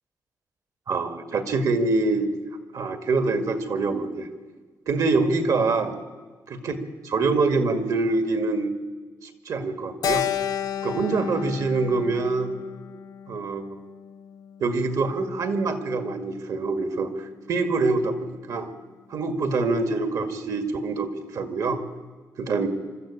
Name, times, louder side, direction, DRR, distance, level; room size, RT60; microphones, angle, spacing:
voice 1, 0.9-2.3 2.7-4.3 4.9-6.0 6.6-6.8 7.0-8.7 9.2-10.3 10.8-12.5 13.3-13.6 14.6-18.7 19.1-21.8 22.4-22.7, right 3 dB, 60° right, 8 dB, 1.9 m, -25 dB
Keyboard (musical), 10.0-14.4, left 9 dB, 70° left, 1.0 m, -31 dB
25.5 x 13.0 x 8.8 m, 1.4 s
wide cardioid pair, 160°, 7 cm